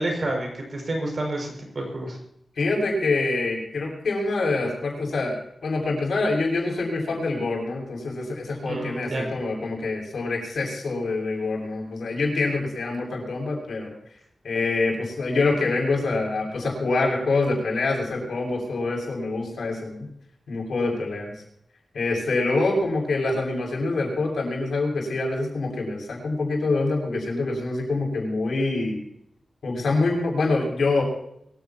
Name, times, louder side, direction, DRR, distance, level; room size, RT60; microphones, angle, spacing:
voice 1, 0.0-2.2 8.6-9.3, right 1 dB, 45° right, 1 dB, 6.1 m, -29 dB
voice 2, 2.6-5.4 5.6-13.9 14.4-20.1 20.5-21.3 21.9-29.0 29.6-31.0, left 3 dB, 90° left, -1 dB, 6.7 m, -25 dB
24.0 x 15.5 x 3.0 m, 0.75 s
wide cardioid pair, 165°, 0 cm